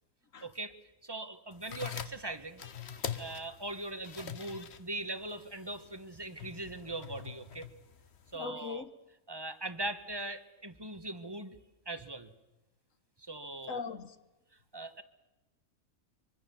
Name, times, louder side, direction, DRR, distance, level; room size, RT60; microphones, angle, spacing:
voice 1, 0.4-0.7 1.0-2.6 3.2-7.7 8.3-8.9 9.3-11.6 11.9-12.3 13.2-13.8 14.7-15.0, right 2 dB, 20° right, 1.2 m, -40 dB
sound 1, 1.5-8.4, left 7 dB, 55° left, 1.3 m, -44 dB
voice 2, 8.4-8.9 13.7-14.1, left 5 dB, 75° left, 1.6 m, -39 dB
24.5 x 24.0 x 7.1 m
omnidirectional pair, 1.4 m